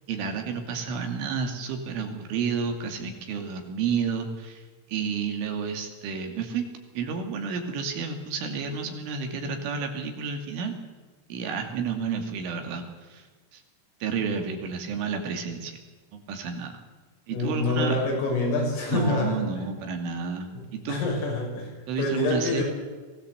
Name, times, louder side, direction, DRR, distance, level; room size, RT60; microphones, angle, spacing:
voice 1, 0.1-4.6 4.9-6.7 7.0-10.7 11.3-13.3 13.5-13.6 14.0-15.8 16.1-16.7 17.3-18.0 18.9-21.0 21.9-22.6, right 5 dB, 75° right, 4 dB, 4.9 m, -31 dB
voice 2, 17.3-19.6 20.6-20.7 20.9-22.6, left 2 dB, 85° left, 0 dB, 8.9 m, -27 dB
23.5 x 17.0 x 8.2 m, 1.4 s
omnidirectional pair, 5.8 m